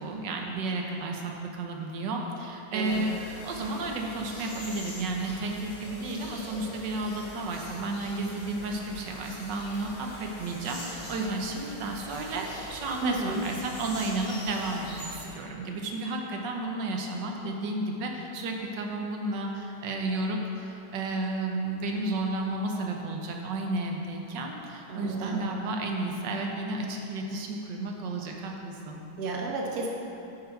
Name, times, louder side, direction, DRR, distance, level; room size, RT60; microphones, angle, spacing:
voice 1, 0.0-3.2 3.4-29.0, right 2 dB, 80° right, 1 dB, 1.5 m, -32 dB
voice 2, 2.7-3.0 13.0-13.4 24.9-25.4 29.2-29.9, right 3 dB, 65° right, -1 dB, 1.4 m, -31 dB
sound 1, 2.8-15.3, equal, 45° left, 1.8 m, -44 dB
9.1 x 5.9 x 4.5 m, 2.9 s
omnidirectional pair, 1.9 m